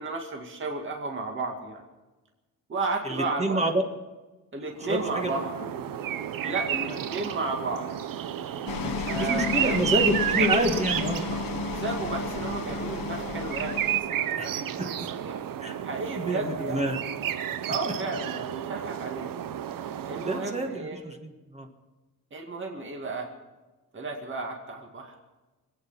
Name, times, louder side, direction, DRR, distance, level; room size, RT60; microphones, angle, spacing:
voice 1, 0.0-1.8 2.7-3.7 4.5-5.6 6.4-7.9 9.1-9.9 10.2-10.5 11.6-15.5 15.8-17.0 17.7-19.3 20.1-21.0 22.3-23.3 23.9-25.2, right 3 dB, 35° right, 1 dB, 2.2 m, -33 dB
voice 2, 3.0-3.8 4.9-5.4 6.4-6.5 6.9-7.0 8.8-11.2 14.4-14.5 14.8-15.1 15.6-15.8 16.3-17.0 17.3-17.4 20.2-21.7, right 1 dB, 20° right, 3 dB, 1.5 m, -28 dB
sound 1, 4.8-20.7, right 10 dB, 75° right, 0.8 m, -32 dB
sound 2, 8.7-14.0, left 6 dB, 80° left, 1.2 m, -33 dB
25.0 x 9.1 x 5.9 m, 1.2 s
wide cardioid pair, 145°, 34 cm